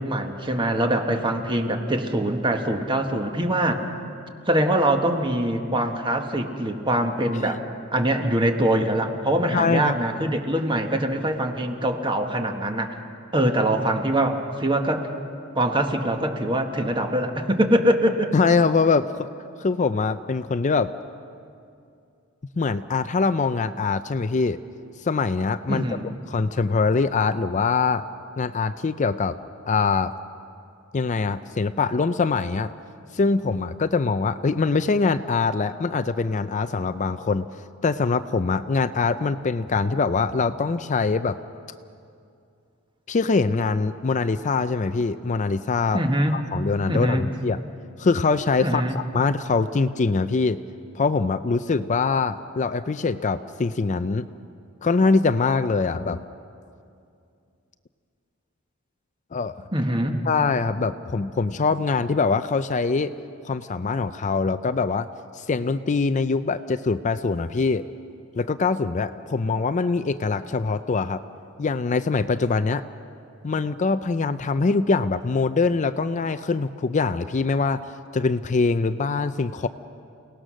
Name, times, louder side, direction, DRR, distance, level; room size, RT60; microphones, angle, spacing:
voice 1, 0.0-3.8 4.5-7.6 7.9-13.0 13.3-15.1 15.5-18.3 25.7-26.1 45.9-46.4 46.9-47.3 48.6-49.0 59.7-60.2, right 1 dB, 25° right, 4 dB, 1.5 m, -23 dB
voice 2, 9.5-10.0 18.3-19.3 19.6-20.9 22.6-24.6 25.0-25.9 26.3-28.0 28.4-29.4 29.7-30.1 30.9-32.7 33.1-37.5 37.8-41.4 43.1-46.0 46.3-47.6 48.0-50.6 50.9-54.3 54.8-56.2 59.3-59.5 60.3-63.1 63.4-65.1 65.3-67.8 68.3-71.2 71.6-72.8 73.4-77.8 78.1-79.7, left 4 dB, 35° left, 11 dB, 0.4 m, -23 dB
29.0 x 18.5 x 6.3 m, 2.5 s
head